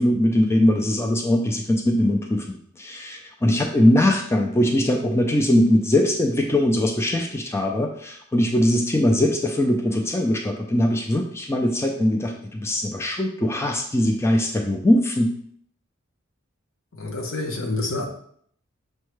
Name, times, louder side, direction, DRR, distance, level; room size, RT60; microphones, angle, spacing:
voice 1, 0.0-2.5 2.8-15.3, left 1 dB, 15° left, 2 dB, 0.3 m, -21 dB
voice 2, 16.9-18.0, left 2 dB, 80° left, 1 dB, 0.8 m, -28 dB
6.2 x 2.2 x 3.1 m, 0.63 s
head